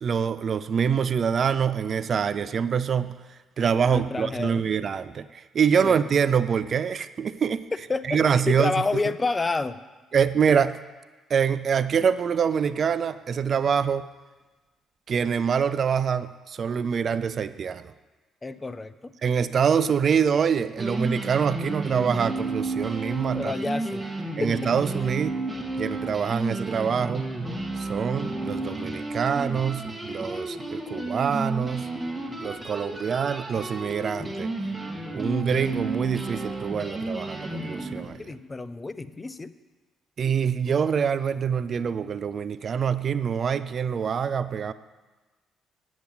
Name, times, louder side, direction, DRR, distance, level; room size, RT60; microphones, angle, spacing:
voice 1, 0.0-7.7 8.1-8.7 10.1-10.7 11.3-14.1 15.1-17.8 19.2-23.5 24.4-25.3 25.8-27.3 27.8-31.9 32.4-34.5 35.1-38.2 40.2-44.7, right 7 dB, 50° right, 14 dB, 0.5 m, -25 dB
voice 2, 3.9-4.7 5.8-6.0 7.7-9.8 18.4-19.1 23.3-24.0 24.4-24.5 38.2-39.5, left 3 dB, 25° left, 13 dB, 0.6 m, -29 dB
sound 1, 20.8-38.1, right 2 dB, 15° right, 2.0 m, -32 dB
8.3 x 7.3 x 8.0 m, 1.2 s
hypercardioid pair, 50°, 0 cm